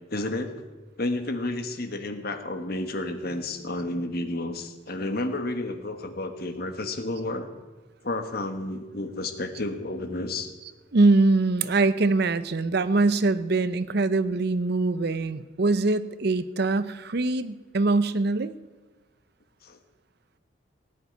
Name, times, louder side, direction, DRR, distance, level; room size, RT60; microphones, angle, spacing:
voice 1, 0.1-0.5 1.0-7.5 8.0-10.5 19.6-19.8, left 2 dB, 50° left, 7 dB, 1.4 m, -31 dB
voice 2, 10.9-18.5, right 3 dB, 50° right, 14 dB, 0.6 m, -23 dB
17.5 x 8.3 x 9.4 m, 1.3 s
head